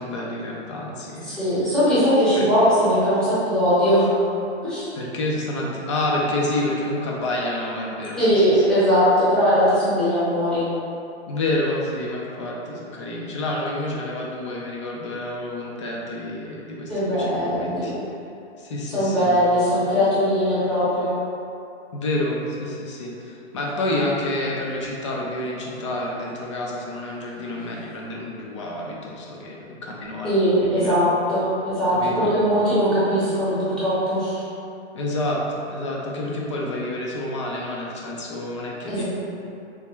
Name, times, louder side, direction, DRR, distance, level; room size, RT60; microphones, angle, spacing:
voice 1, 0.0-1.4 2.3-2.5 4.9-8.6 11.3-17.9 18.6-19.6 21.9-31.0 31.9-32.3 34.9-35.4 35.7-39.0, left 1 dB, 30° left, -2 dB, 0.4 m, -29 dB
voice 2, 1.3-4.1 4.6-4.9 8.2-10.7 16.9-17.9 18.9-21.1 30.2-34.4 38.9-39.0, equal, ahead, -13 dB, 0.7 m, -20 dB
3.4 x 3.1 x 3.0 m, 2.7 s
hypercardioid pair, 160°, 33 cm